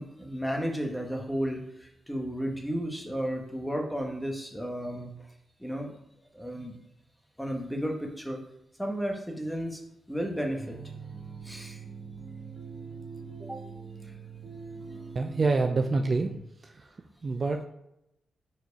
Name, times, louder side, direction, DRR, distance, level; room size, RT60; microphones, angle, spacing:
voice 1, 0.0-5.1 5.6-5.9 6.3-6.8 7.4-8.4 8.8-9.8 10.1-10.8 11.4-11.8 13.4-13.6 14.0-14.1 14.7-15.1, equal, 5° left, 2 dB, 1.3 m, -33 dB
sound 1, 10.6-16.4, right 5 dB, 65° right, 2.0 m, -43 dB
voice 2, 15.1-16.3 16.6-16.9 17.2-17.6, right 3 dB, 40° right, 6 dB, 0.5 m, -27 dB
4.8 x 4.4 x 5.3 m, 0.83 s
cardioid pair, 85°, 0 cm